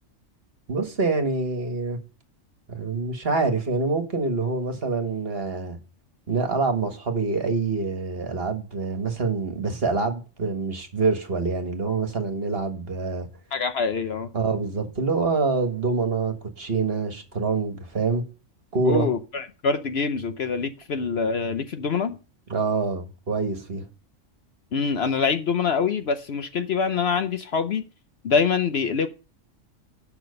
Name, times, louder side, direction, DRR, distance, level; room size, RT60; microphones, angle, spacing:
voice 1, 0.7-2.0 2.7-5.8 6.3-13.3 14.3-18.2 18.7-19.1 22.5-23.8, right 4 dB, 50° right, 1.8 m, -26 dB
voice 2, 13.5-14.3 18.8-22.2 24.7-27.8 28.2-29.1, left 5 dB, 55° left, 0.9 m, -25 dB
8.9 x 6.0 x 6.5 m
omnidirectional pair, 1.4 m